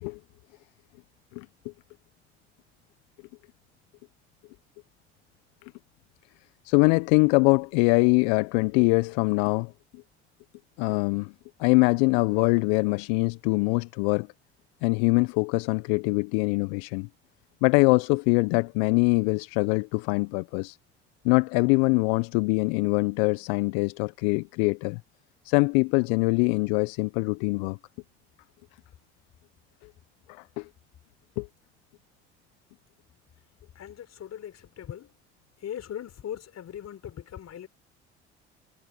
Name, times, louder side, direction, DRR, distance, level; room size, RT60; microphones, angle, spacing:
voice 1, 6.6-9.7 10.8-11.3 11.6-14.3 14.8-17.1 17.6-20.8 21.2-25.0 25.4-27.8 30.3-30.7 31.4-31.5, left 31 dB, 70° left, 1.1 m, -23 dB
voice 2, 33.7-35.1 35.6-37.7, left 10 dB, 50° left, 4.6 m, -39 dB
hypercardioid pair, 55°, 34 cm